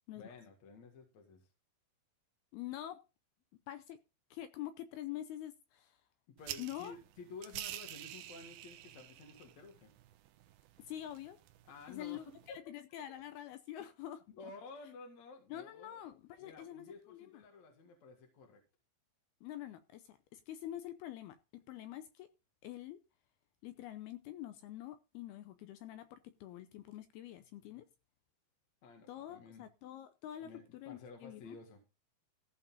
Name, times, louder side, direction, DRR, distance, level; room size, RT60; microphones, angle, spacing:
voice 1, 0.2-1.5 6.3-9.9 11.7-12.4 14.4-16.0 16.4-18.6 28.8-29.7 30.4-31.8, left 4 dB, 55° left, 2.3 m, -53 dB
voice 2, 2.5-3.0 3.7-4.0 4.3-6.0 6.6-6.9 10.9-11.4 11.9-12.2 12.7-14.5 15.5-17.4 19.4-22.3 22.6-23.0 23.6-27.9 29.1-31.6, left 12 dB, 80° left, 2.3 m, -46 dB
sound 1, 6.4-12.6, right 13 dB, 80° right, 2.2 m, -49 dB
15.0 x 5.4 x 5.4 m
omnidirectional pair, 5.2 m